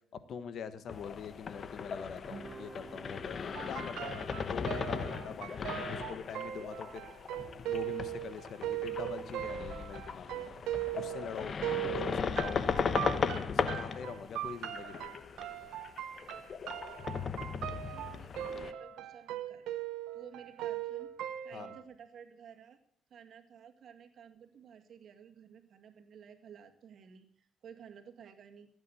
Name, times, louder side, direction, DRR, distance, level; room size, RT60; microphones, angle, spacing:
voice 1, 0.1-7.1 7.7-10.5 10.9-11.5 11.9-13.2 13.5-15.1 21.5-21.7, left 7 dB, 65° left, 12 dB, 1.3 m, -44 dB
sound 1, 0.9-18.7, left 6 dB, 50° left, 1.0 m, -37 dB
Guitar, 2.2-6.9, right 4 dB, 30° right, 0.9 m, -53 dB
sound 2, 3.5-21.8, right 13 dB, 90° right, 1.0 m, -39 dB
voice 2, 17.7-19.7 20.1-21.1 21.4-22.8 23.1-28.7, right 7 dB, 60° right, 5 dB, 2.1 m, -53 dB
15.0 x 9.0 x 7.2 m, 0.66 s
cardioid pair, 90°, 0 cm